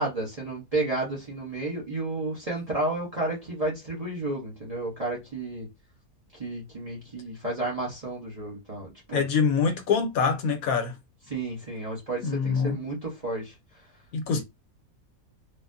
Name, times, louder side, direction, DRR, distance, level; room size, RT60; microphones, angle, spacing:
voice 1, 0.0-5.7 6.4-9.3 11.3-13.5 14.3-14.4, right 2 dB, 30° right, 0.8 m, -32 dB
voice 2, 9.1-10.9 12.2-12.8 14.1-14.4, left 5 dB, 70° left, 1.1 m, -25 dB
3.4 x 2.2 x 2.6 m
omnidirectional pair, 1.6 m